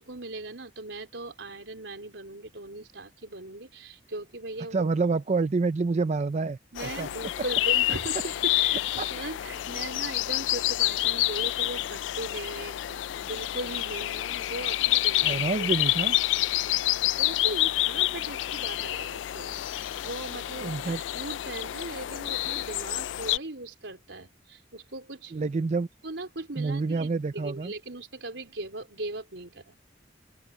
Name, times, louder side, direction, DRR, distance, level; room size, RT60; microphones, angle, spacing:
voice 1, 0.0-4.9 6.7-8.8 9.1-15.7 16.7-25.3 26.0-29.8, right 2 dB, 85° right, 4.1 m, -39 dB
voice 2, 4.7-7.1 9.0-9.1 15.2-16.1 20.6-21.0 25.3-25.9 26.5-27.7, right 4 dB, 40° right, 0.4 m, -27 dB
sound 1, 6.8-23.4, left 15 dB, 90° left, 0.3 m, -28 dB
open air
head